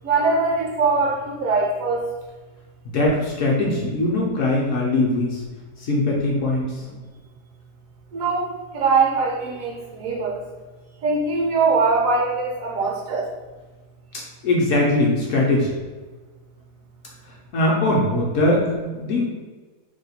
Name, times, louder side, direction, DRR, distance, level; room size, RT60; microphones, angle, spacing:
voice 1, 0.0-2.0 8.1-8.5 8.7-10.4 11.0-13.3, right 4 dB, 70° right, -1 dB, 0.9 m, -21 dB
voice 2, 2.8-5.4 5.8-6.9 14.1-15.7 17.5-19.3, left 2 dB, 65° left, -3 dB, 0.8 m, -21 dB
2.8 x 2.2 x 4.1 m, 1.3 s
omnidirectional pair, 1.7 m